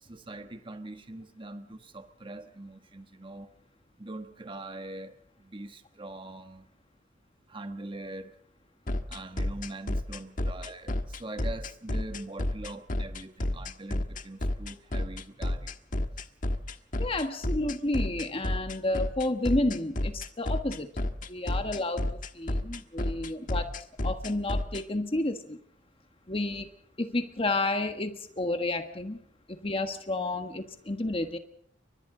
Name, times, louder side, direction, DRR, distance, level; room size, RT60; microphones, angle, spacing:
voice 1, 0.0-3.5 4.0-6.7 7.5-8.4 9.1-15.7, right 2 dB, 30° right, 7 dB, 1.3 m, -42 dB
sound 1, 8.9-24.8, left 1 dB, 45° left, 1.5 m, -30 dB
voice 2, 17.0-20.9 21.3-23.7 24.0-25.6 26.3-26.7 27.0-29.2 29.5-31.4, left 2 dB, 30° left, 6 dB, 1.5 m, -31 dB
30.0 x 25.0 x 3.9 m, 0.65 s
head